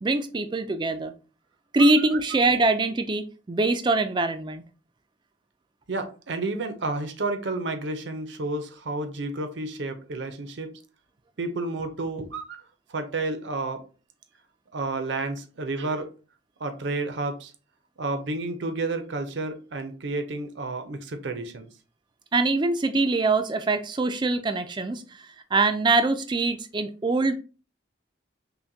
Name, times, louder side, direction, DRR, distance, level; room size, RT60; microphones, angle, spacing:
voice 1, 0.0-1.1 1.7-4.6 22.3-25.0 25.5-27.3, right 3 dB, 25° right, 0.3 m, -23 dB
voice 2, 5.9-10.8 11.4-12.6 12.9-13.8 14.7-16.1 16.6-17.5 18.0-21.7, right 2 dB, 70° right, 0.6 m, -31 dB
5.6 x 2.2 x 2.6 m
head